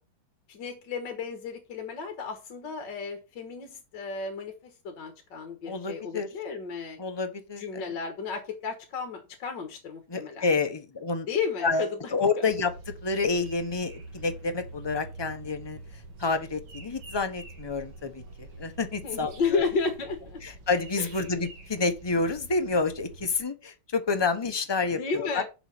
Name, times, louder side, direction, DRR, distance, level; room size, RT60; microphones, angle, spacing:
voice 1, 0.5-4.5 4.8-7.0 7.6-10.5 11.3-12.1 12.4-12.5 19.0-20.4 21.0-21.1 24.9-25.4, left 5 dB, 65° left, 2.0 m, -33 dB
voice 2, 5.7-6.3 7.0-7.8 10.1-11.3 11.6-12.7 13.0-15.8 16.2-19.3 20.4-25.4, left 4 dB, 25° left, 0.5 m, -29 dB
sound 1, 12.5-23.4, right 2 dB, 75° right, 2.6 m, -45 dB
7.1 x 5.6 x 6.0 m
omnidirectional pair, 2.2 m